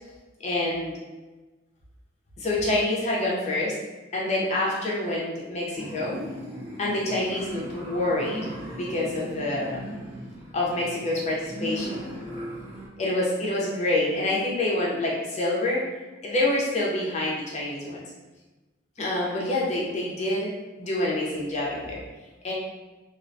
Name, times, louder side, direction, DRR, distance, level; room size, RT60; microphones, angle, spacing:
voice 1, 0.4-1.0 2.4-3.7 4.1-6.2 6.8-9.8 10.5-12.1 13.0-15.8 16.2-18.0 19.0-20.5 20.8-22.0 22.4-22.5, left 1 dB, 35° left, -4 dB, 0.5 m, -27 dB
sound 1, 5.7-12.9, equal, 30° right, 0.5 m, -38 dB
2.3 x 2.2 x 2.5 m, 1.2 s
head